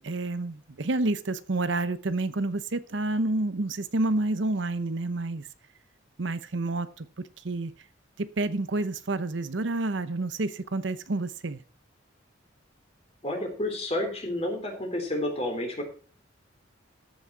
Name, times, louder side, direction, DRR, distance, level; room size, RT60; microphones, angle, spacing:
voice 1, 0.0-5.5 6.2-7.7 8.2-11.6, right 2 dB, 70° right, 0.8 m, -29 dB
voice 2, 13.2-15.8, left 1 dB, 30° left, 3.6 m, -30 dB
14.0 x 6.4 x 4.6 m
head